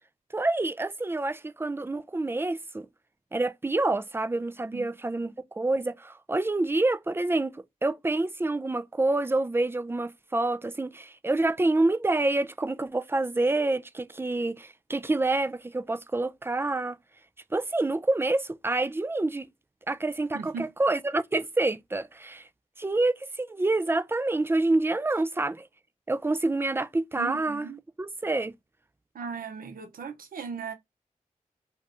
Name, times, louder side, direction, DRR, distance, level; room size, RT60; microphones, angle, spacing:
voice 1, 0.3-2.9 3.3-17.0 17.5-19.5 19.9-22.5 22.8-25.7 26.1-27.7 28.0-28.5, right 2 dB, 15° right, 0.4 m, -27 dB
voice 2, 20.3-20.7 27.2-27.8 29.1-30.7, right 5 dB, 85° right, 0.8 m, -37 dB
2.5 x 2.5 x 3.3 m
cardioid pair, 45°, 14 cm